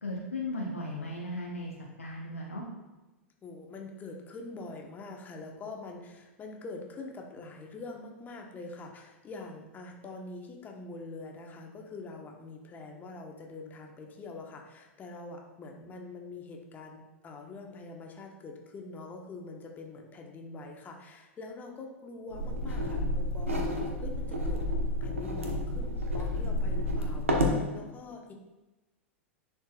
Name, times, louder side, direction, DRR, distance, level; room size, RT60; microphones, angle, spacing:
voice 1, 0.0-1.7 2.0-2.7, left 1 dB, 90° left, -3 dB, 1.0 m, -36 dB
voice 2, 3.4-24.6 25.0-28.3, left 3 dB, 25° left, 1 dB, 1.2 m, -44 dB
sound 1, 22.3-27.6, left 1 dB, 85° right, 1.1 m, -30 dB
10.5 x 4.4 x 2.4 m, 1.1 s
figure-of-eight pair, 95°, 7 cm